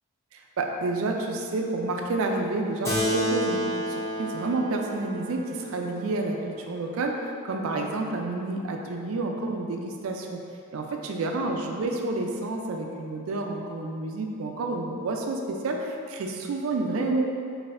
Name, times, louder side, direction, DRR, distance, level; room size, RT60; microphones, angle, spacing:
voice 1, 0.3-3.6 3.9-6.4 6.7-10.4 10.7-17.2, right 2 dB, 70° right, 2 dB, 0.4 m, -29 dB
Keyboard (musical), 2.8-7.7, equal, 15° left, 0.4 m, -31 dB
4.0 x 2.7 x 2.5 m, 2.4 s
head